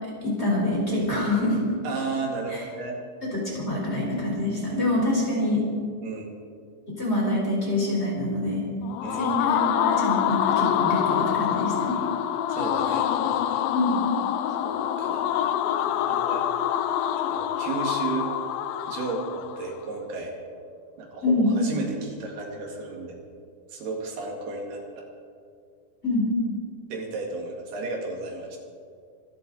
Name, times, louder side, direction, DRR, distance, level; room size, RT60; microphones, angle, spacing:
voice 1, 0.0-1.6 2.5-2.6 3.3-5.6 7.0-8.6 9.1-12.0 13.7-14.0 21.2-21.5 26.0-26.2, left 1 dB, 15° left, -5 dB, 4.3 m, -25 dB
voice 2, 1.8-3.0 6.0-6.3 9.0-9.3 12.5-13.6 14.6-15.4 15.9-16.4 17.1-18.4 18.9-20.3 21.0-23.2 23.7-25.0 26.9-28.6, right 3 dB, 75° right, 1 dB, 3.9 m, -33 dB
sound 1, 8.8-19.7, left 10 dB, 80° left, 2.2 m, -26 dB
25.0 x 12.5 x 4.0 m, 2.3 s
omnidirectional pair, 4.6 m